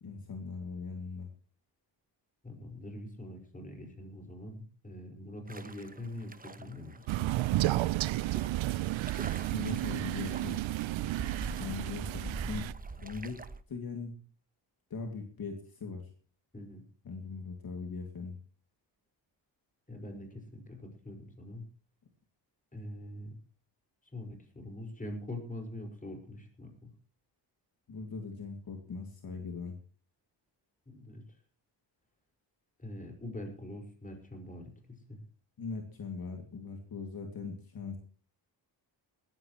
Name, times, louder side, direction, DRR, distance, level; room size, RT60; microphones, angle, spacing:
voice 1, 0.0-1.3 9.5-10.6 11.6-12.7 13.0-14.2 14.9-16.1 17.0-18.4 27.9-29.8 35.6-38.0, left 4 dB, 50° left, 4 dB, 2.4 m, -40 dB
voice 2, 2.4-7.3 16.5-16.8 19.9-21.6 22.7-23.4 24.1-26.9 30.9-31.2 32.8-35.2, left 1 dB, 20° left, 3 dB, 5.3 m, -44 dB
sound 1, 5.5-13.6, right 3 dB, 20° right, 1.0 m, -45 dB
Crow, 7.1-12.7, right 16 dB, 85° right, 0.6 m, -32 dB
19.5 x 15.0 x 3.1 m, 0.40 s
cardioid pair, 120°, 45 cm